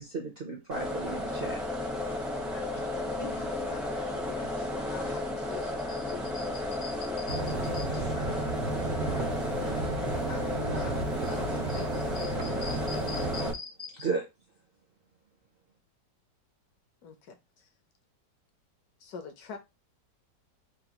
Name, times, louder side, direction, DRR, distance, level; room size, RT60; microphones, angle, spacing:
voice 1, 0.0-1.6 4.4-4.5 5.4-6.0 6.3-6.5 6.8-7.4 7.7-8.2 10.7-10.8 11.2-11.4 11.7-14.2, right 2 dB, 55° right, 0.6 m, -38 dB
sound 1, 0.7-13.5, left 2 dB, ahead, 0.4 m, -33 dB
voice 2, 2.5-6.5 6.9-7.4 7.7-9.8 10.2-10.5 10.8-13.1, left 6 dB, 85° left, 1.7 m, -48 dB
sound 2, 7.3-13.5, right 3 dB, 85° right, 1.7 m, -34 dB
voice 3, 17.0-17.7 19.0-19.6, left 5 dB, 65° left, 1.2 m, -44 dB
5.5 x 2.3 x 2.9 m
omnidirectional pair, 1.9 m